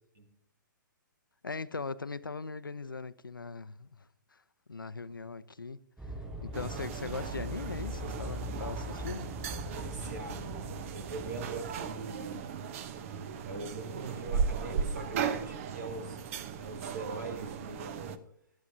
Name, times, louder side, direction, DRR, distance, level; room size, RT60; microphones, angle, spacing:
voice 1, 1.4-4.4 4.7-6.1 6.4-9.4, left 4 dB, 85° left, 0.6 m, -40 dB
sound 1, 6.0-11.9, left 1 dB, 10° right, 4.3 m, -41 dB
sound 2, 6.5-18.2, right 6 dB, 40° right, 0.8 m, -37 dB
voice 2, 9.7-10.6 10.9-12.6 13.4-18.2, right 3 dB, 60° right, 3.1 m, -42 dB
19.0 x 12.0 x 2.7 m
figure-of-eight pair, 120°, 11 cm